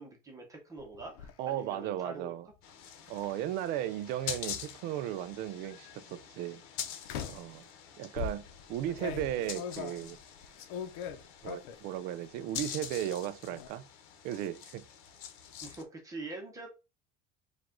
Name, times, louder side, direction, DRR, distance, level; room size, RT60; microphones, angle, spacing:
voice 1, 0.0-2.3 15.6-16.7, right 2 dB, 15° right, 0.9 m, -44 dB
sound 1, 0.8-1.3 3.1-3.3 4.1-4.9 5.6-5.9 7.1-7.6 8.2-11.9 12.3-12.8 13.1-13.7, left 7 dB, 90° left, 0.7 m, -42 dB
voice 2, 1.4-2.5 3.1-6.6 7.3-7.7 8.0-10.2 11.4-13.9 14.2-14.8, right 12 dB, 50° right, 0.4 m, -36 dB
sound 2, 2.6-15.8, left 8 dB, 70° left, 1.0 m, -45 dB
4.7 x 2.4 x 3.7 m
cardioid pair, 170°, 20 cm